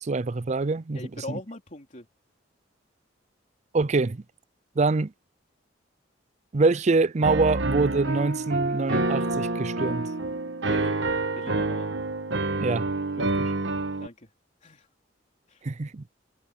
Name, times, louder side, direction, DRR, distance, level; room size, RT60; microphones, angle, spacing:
voice 1, 0.0-1.0 1.3-1.4 3.7-4.2 4.8-5.1 6.5-10.1 12.6-12.9 13.2-13.3 15.6-16.0, right 3 dB, 35° right, 0.5 m, -25 dB
voice 2, 0.9-2.1 10.7-11.0 11.3-11.9 13.1-13.3 14.0-14.3 14.6-14.9 15.5-15.7, left 2 dB, 40° left, 3.8 m, -41 dB
Piano, 7.2-14.1, right 2 dB, 65° right, 1.4 m, -27 dB
head